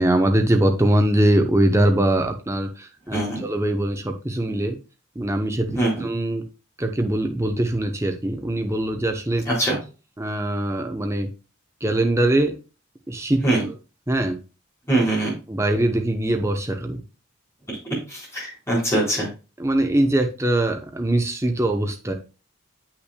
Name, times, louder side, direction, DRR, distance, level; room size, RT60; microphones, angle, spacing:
voice 1, 0.0-4.8 5.2-6.5 6.8-9.4 10.2-11.3 11.8-12.5 13.1-13.4 14.1-14.4 15.5-17.0 19.6-22.1, right 1 dB, 15° right, 4 dB, 0.7 m, -22 dB
voice 2, 3.1-3.4 5.7-6.0 9.4-9.8 13.4-13.7 14.9-15.3 17.7-17.8 18.1-19.3, right 1 dB, 15° left, -7 dB, 4.1 m, -22 dB
8.2 x 5.8 x 2.2 m, 0.32 s
head